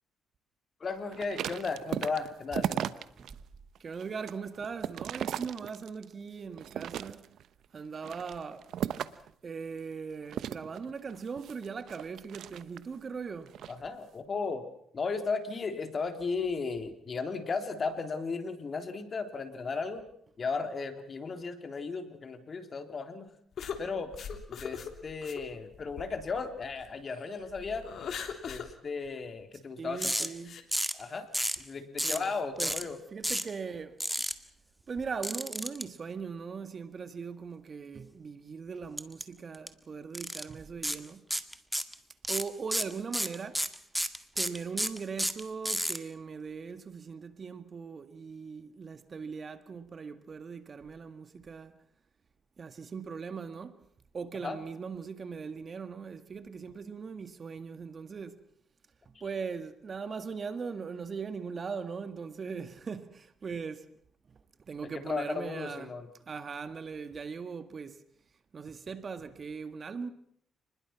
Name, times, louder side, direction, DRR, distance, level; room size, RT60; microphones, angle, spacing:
voice 1, 0.8-2.9 13.7-14.7 14.9-20.0 20.4-23.3 23.8-24.1 24.5-27.9 28.4-30.3 30.9-31.3 31.6-33.0 54.4-54.6 64.9-66.1, left 4 dB, 40° left, 3.5 m, -35 dB
sound 1, 1.1-3.3 3.8-6.1 6.6-7.5 8.0-9.3 10.3-13.0 13.5-13.8, right 10 dB, 75° right, 1.0 m, -36 dB
voice 2, 3.8-7.3 7.7-8.7 9.0-9.1 9.4-13.6 29.8-30.6 32.0-32.3 32.6-32.8 33.1-34.0 34.9-41.3 42.3-43.7 44.4-51.8 52.6-53.8 54.1-58.4 59.1-63.9 64.3-64.4 64.7-65.9 66.3-68.0 68.5-70.1, right 5 dB, 40° right, 1.8 m, -40 dB
sound 2, 23.6-26.9 27.3-28.7 29.0-29.1 29.9-30.6, left 7 dB, 60° left, 3.3 m, -40 dB
sound 3, 30.0-30.3 30.7-31.0 31.3-31.6 32.0-32.3 32.6-32.8 33.2-33.5 34.0-34.3 35.2-35.8 39.0-39.2 39.5-39.7 40.1-40.4 40.8-41.0 41.3-41.9 42.2-46.0, equal, 5° right, 1.9 m, -31 dB
29.0 x 21.0 x 6.0 m
cardioid pair, 90°, 0 cm